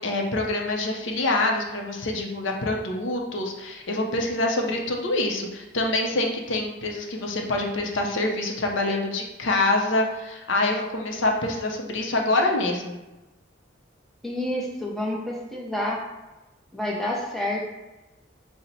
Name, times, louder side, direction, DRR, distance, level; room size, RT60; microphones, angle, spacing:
voice 1, 0.0-13.0, left 2 dB, 70° left, 1 dB, 0.6 m, -26 dB
voice 2, 14.2-16.0 16.7-17.7, left 1 dB, ahead, -3 dB, 0.6 m, -28 dB
4.2 x 2.1 x 3.9 m, 1.0 s
head